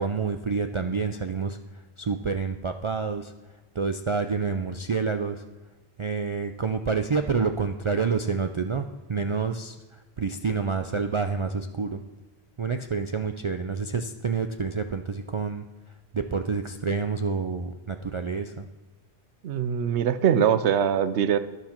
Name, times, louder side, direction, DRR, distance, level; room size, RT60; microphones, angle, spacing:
voice 1, 0.0-1.6 2.0-3.3 3.7-5.4 6.0-12.0 12.6-15.6 16.1-18.7, right 5 dB, 55° right, 7 dB, 0.3 m, -28 dB
voice 2, 19.4-21.4, right 8 dB, 85° right, 13 dB, 0.9 m, -22 dB
11.5 x 11.0 x 4.4 m, 1.2 s
omnidirectional pair, 1.1 m